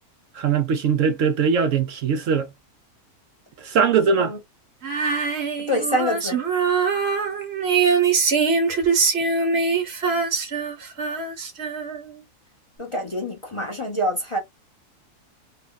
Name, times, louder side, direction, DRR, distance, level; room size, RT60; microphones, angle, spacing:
voice 1, 0.3-2.5 3.6-4.3, right 6 dB, 65° right, 0.9 m, -21 dB
Female singing, 4.8-12.2, right 5 dB, 50° right, 1.2 m, -23 dB
voice 2, 5.7-6.4 12.8-14.4, equal, 25° left, 0.9 m, -25 dB
3.8 x 2.3 x 3.8 m
omnidirectional pair, 1.6 m